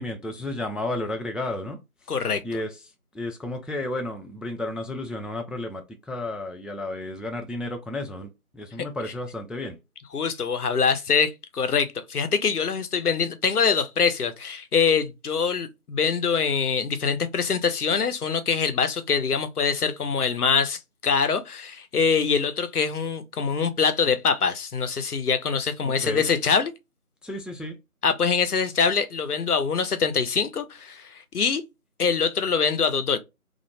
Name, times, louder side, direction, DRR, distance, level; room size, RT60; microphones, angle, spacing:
voice 1, 0.0-1.8 2.4-2.8 3.1-9.8 25.8-26.3 27.2-27.8, left 1 dB, ahead, 0.3 m, -32 dB
voice 2, 2.1-2.4 10.1-26.7 28.0-31.6 32.0-33.2, left 5 dB, 85° left, 0.7 m, -24 dB
2.5 x 2.0 x 2.7 m
figure-of-eight pair, 175°, 44 cm